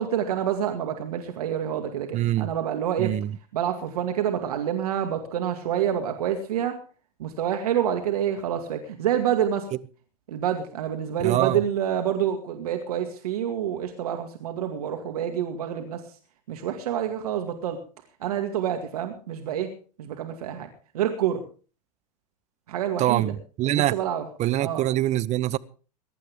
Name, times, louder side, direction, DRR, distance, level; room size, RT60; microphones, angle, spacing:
voice 1, 0.0-3.1 3.5-6.8 7.2-9.7 10.3-16.0 16.5-17.8 18.2-19.7 20.0-20.7 20.9-21.4 22.7-23.3 23.7-24.2 24.6-24.8, right 9 dB, 70° right, 2.2 m, -27 dB
voice 2, 2.1-2.5 3.0-3.4 11.2-11.6 23.0-23.9 24.4-25.6, right 14 dB, 35° right, 0.9 m, -24 dB
22.5 x 11.5 x 3.6 m
hypercardioid pair, 100°, 20 cm